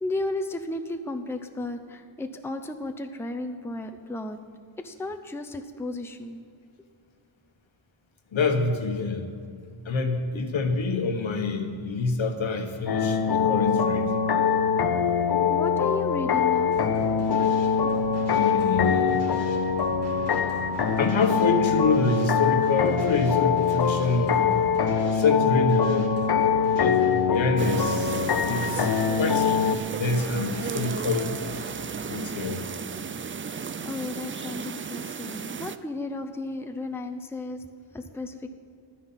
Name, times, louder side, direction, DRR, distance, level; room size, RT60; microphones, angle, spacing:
voice 1, 0.0-4.4 4.8-6.4 15.1-16.8 33.5-37.7 37.9-38.5, left 2 dB, 5° left, 5 dB, 0.7 m, -34 dB
voice 2, 8.3-9.3 9.8-14.1 18.3-19.3 21.0-24.7 25.1-26.1 26.7-27.0 27.3-28.2 28.5-28.9 29.2-31.4 32.1-32.6, left 3 dB, 70° left, 5 dB, 1.4 m, -26 dB
sound 1, 12.9-29.8, left 6 dB, 50° left, 0.8 m, -23 dB
sound 2, 16.7-31.8, equal, 55° right, 2.7 m, -43 dB
sound 3, 27.6-35.8, right 6 dB, 30° right, 0.4 m, -34 dB
11.5 x 9.7 x 5.7 m, 2.3 s
wide cardioid pair, 80°, 48 cm